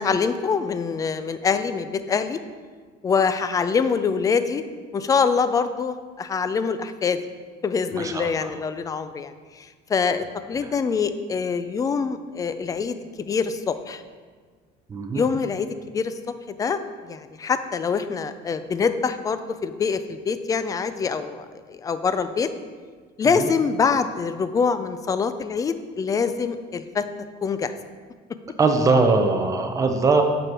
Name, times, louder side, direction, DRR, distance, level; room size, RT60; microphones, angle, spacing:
voice 1, 0.0-2.4 3.0-4.6 4.9-7.2 7.6-14.0 15.1-16.1 16.6-22.5 23.2-27.1 27.4-27.7, left 5 dB, 20° left, 11 dB, 0.3 m, -25 dB
voice 2, 7.9-8.5 14.9-15.2 23.4-23.5 28.6-30.2, right 3 dB, 20° right, 5 dB, 0.7 m, -21 dB
7.8 x 6.1 x 4.7 m, 1.6 s
cardioid pair, 160°, 18 cm